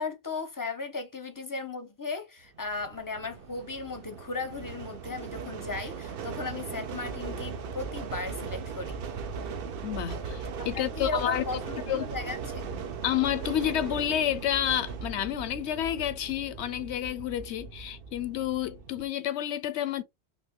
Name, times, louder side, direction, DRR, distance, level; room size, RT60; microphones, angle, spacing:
voice 1, 0.0-9.0 10.6-12.6, left 3 dB, 25° left, 0.5 m, -36 dB
sound 1, 2.6-19.1, right 5 dB, 60° right, 0.8 m, -38 dB
voice 2, 9.8-11.4 11.9-12.1 13.0-20.0, left 11 dB, 80° left, 0.9 m, -30 dB
3.3 x 2.6 x 2.9 m
omnidirectional pair, 1.1 m